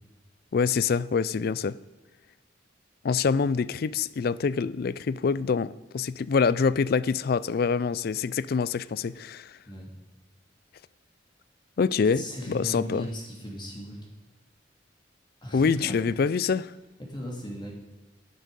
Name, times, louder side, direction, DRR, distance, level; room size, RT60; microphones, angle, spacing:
voice 1, 0.5-1.8 3.0-9.6 11.8-13.1 15.5-16.7, left 5 dB, 55° left, 0.4 m, -25 dB
voice 2, 12.1-14.0 15.4-15.9 17.0-17.7, equal, 25° left, 2.4 m, -37 dB
11.0 x 10.5 x 5.3 m
head